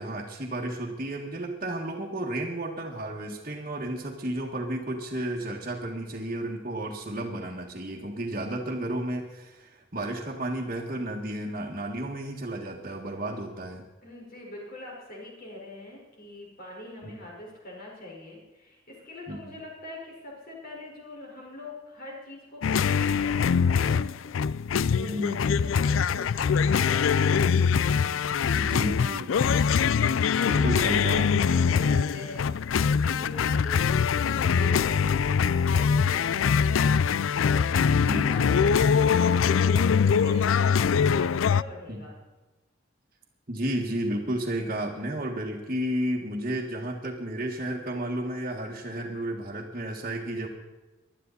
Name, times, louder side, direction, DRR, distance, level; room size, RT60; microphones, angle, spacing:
voice 1, 0.0-13.9 17.0-17.1 19.3-19.5 25.0-25.7 28.6-29.3 30.5-31.5 37.9-38.5 41.9-42.1 43.5-50.5, right 1 dB, 40° right, -4 dB, 1.8 m, -32 dB
voice 2, 14.0-24.1 24.9-27.5 30.0-36.7 37.5-42.1, left 1 dB, 50° left, -3 dB, 4.8 m, -43 dB
sound 1, 22.6-41.6, left 6 dB, 85° left, 0.4 m, -23 dB
21.0 x 12.0 x 4.1 m, 1.1 s
head